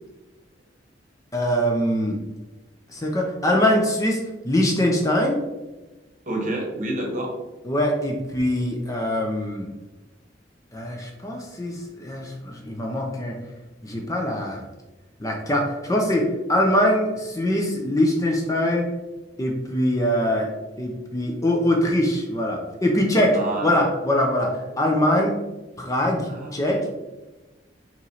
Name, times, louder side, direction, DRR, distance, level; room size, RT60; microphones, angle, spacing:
voice 1, 1.3-2.2 2.9-4.2 4.4-5.4 7.6-9.7 10.7-13.4 13.8-14.6 15.2-18.9 19.4-20.5 20.8-25.3 25.8-26.8, left 1 dB, 20° left, 0 dB, 0.6 m, -23 dB
voice 2, 6.3-7.3 23.3-23.9 26.3-26.9, right 1 dB, 45° right, 0 dB, 1.0 m, -29 dB
4.2 x 3.1 x 4.0 m, 1.1 s
head